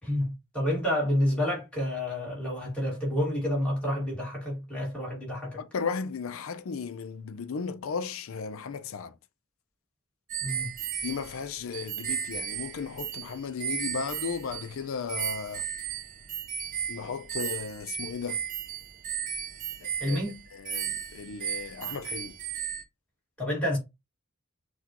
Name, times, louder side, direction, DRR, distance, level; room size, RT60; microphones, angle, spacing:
voice 1, 0.0-5.6 10.4-10.7 20.0-20.4 23.4-23.8, left 1 dB, 5° left, 1.9 m, -29 dB
voice 2, 5.6-9.1 11.0-15.7 16.9-18.4 19.8-20.2 20.5-22.3, left 5 dB, 70° left, 0.4 m, -35 dB
sound 1, 10.3-14.8 15.1-22.8, right 8 dB, 35° right, 0.4 m, -35 dB
5.8 x 2.4 x 2.9 m
head